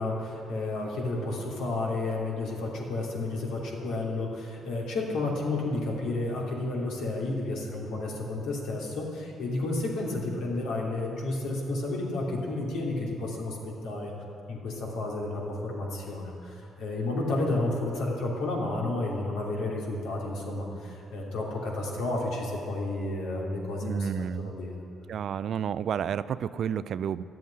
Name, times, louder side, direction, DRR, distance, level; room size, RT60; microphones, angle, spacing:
voice 1, 0.0-14.1 14.5-24.8, left 2 dB, 90° left, -2 dB, 2.9 m, -31 dB
voice 2, 23.8-24.5 25.1-27.2, right 8 dB, 65° right, 16 dB, 0.4 m, -31 dB
12.0 x 7.8 x 9.8 m, 2.7 s
cardioid pair, 90°, 0 cm